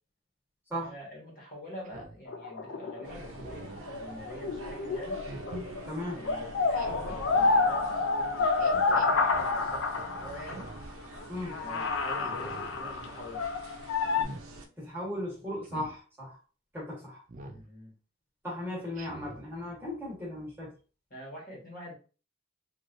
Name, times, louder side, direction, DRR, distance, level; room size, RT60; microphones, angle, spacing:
voice 1, 0.8-5.2 6.1-7.9 8.2-10.7 11.6-13.5 17.5-17.9 21.1-21.9, equal, 45° left, -3 dB, 1.3 m, -45 dB
Speech synthesizer, 1.8-2.2 3.3-3.8 5.2-5.5 6.7-7.2 8.6-9.1 10.4-10.9 12.2-12.7 14.0-14.4 15.6-15.9 17.3-17.6 18.9-19.4, right 2 dB, 40° right, 0.4 m, -46 dB
sound 1, 2.3-5.8 6.1-10.6 11.2-11.3 11.5-14.2, left 4 dB, 65° left, 0.3 m, -29 dB
sound 2, 3.0-14.7, right 2 dB, 90° right, 0.6 m, -45 dB
voice 2, 5.9-6.2 11.3-11.6 14.8-16.4 16.7-17.2 18.4-20.8, left 1 dB, 10° right, -5 dB, 1.1 m, -37 dB
3.1 x 2.5 x 2.5 m, 0.35 s
head